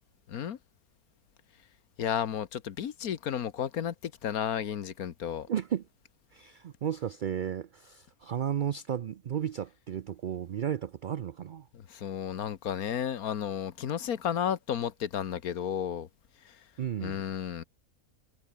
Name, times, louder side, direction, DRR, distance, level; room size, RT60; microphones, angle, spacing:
voice 1, 2.0-5.5 11.7-16.1 16.4-16.6 17.0-17.6, left 9 dB, 85° left, 1.6 m, -33 dB
voice 2, 5.5-5.8 6.3-11.6 16.8-17.2, right 9 dB, 70° right, 0.4 m, -33 dB
omnidirectional pair, 1.5 m